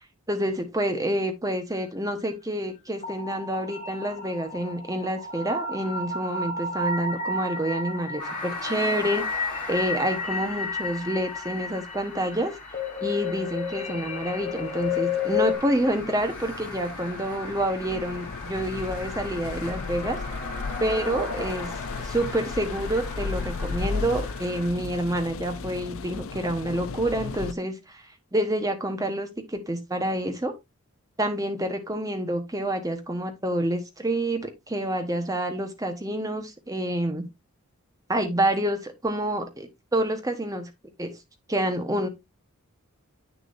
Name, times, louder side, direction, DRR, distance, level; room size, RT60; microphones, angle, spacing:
voice 1, 0.3-12.5 13.0-20.2 20.8-21.7 22.0-28.0 28.3-30.5 31.2-37.2 38.1-40.7 41.0-41.2 41.5-42.1, right 1 dB, 15° right, 1.2 m, -28 dB
sound 1, 3.0-15.5, left 4 dB, 30° left, 1.4 m, -32 dB
sound 2, 8.2-24.7, left 2 dB, 5° left, 5.0 m, -39 dB
sound 3, 9.8-10.0 13.3-13.4 13.6-27.5, left 4 dB, 70° left, 0.5 m, -36 dB
8.5 x 6.7 x 2.6 m
head